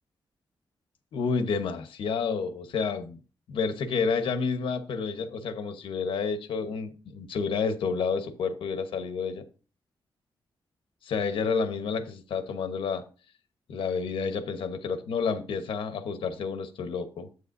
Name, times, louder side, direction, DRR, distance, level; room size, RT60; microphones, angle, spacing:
voice 1, 1.1-3.2 3.5-9.4 11.0-13.0 13.7-17.3, left 5 dB, 90° left, 1.1 m, -30 dB
9.5 x 8.3 x 2.6 m
wide cardioid pair, 170°, 9 cm